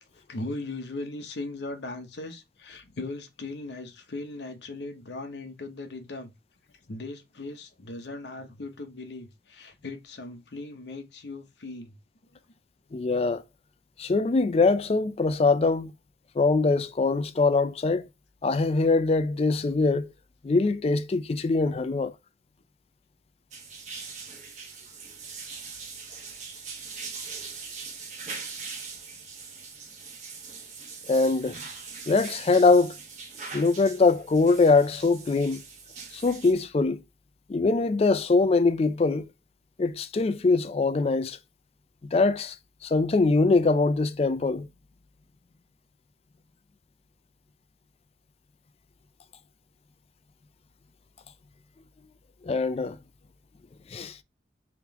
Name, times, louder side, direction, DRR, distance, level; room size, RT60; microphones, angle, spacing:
voice 1, 0.1-6.3 6.9-11.9 21.9-22.1, left 2 dB, 75° left, 0.7 m, -38 dB
voice 2, 12.9-13.4 14.0-15.9 16.4-18.1 18.4-20.1 20.4-22.1 31.1-31.6 32.1-32.9 33.5-35.6 36.1-37.0 37.5-39.3 39.8-41.4 42.1-42.5 42.8-44.7 52.4-53.0 53.9-54.2, left 3 dB, 35° left, 0.3 m, -23 dB
sound 1, 23.5-36.5, right 5 dB, 45° right, 1.0 m, -41 dB
3.6 x 2.9 x 3.4 m
head